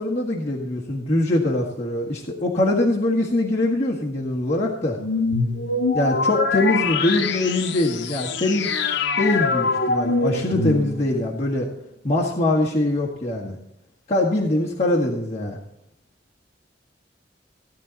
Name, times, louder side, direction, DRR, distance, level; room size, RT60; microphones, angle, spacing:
voice 1, 0.0-5.0 5.9-8.8 9.2-11.7 12.0-13.6 14.1-15.6, left 1 dB, 35° left, -6 dB, 1.7 m, -23 dB
sound 1, 5.0-11.3, left 4 dB, 75° left, 0.8 m, -24 dB
16.5 x 10.0 x 4.1 m, 0.81 s
head